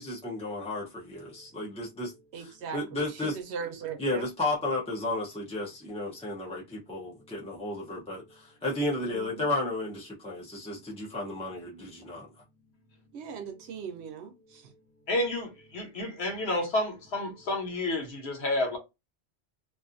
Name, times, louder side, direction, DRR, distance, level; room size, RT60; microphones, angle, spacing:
voice 1, 0.0-3.4 4.0-12.3, left 2 dB, 10° left, 0.4 m, -33 dB
voice 2, 2.3-4.3 6.1-6.2 9.0-9.5 13.1-14.7, right 6 dB, 85° right, 0.9 m, -39 dB
voice 3, 15.1-18.8, left 1 dB, 75° left, 1.1 m, -30 dB
2.6 x 2.4 x 2.5 m
omnidirectional pair, 1.1 m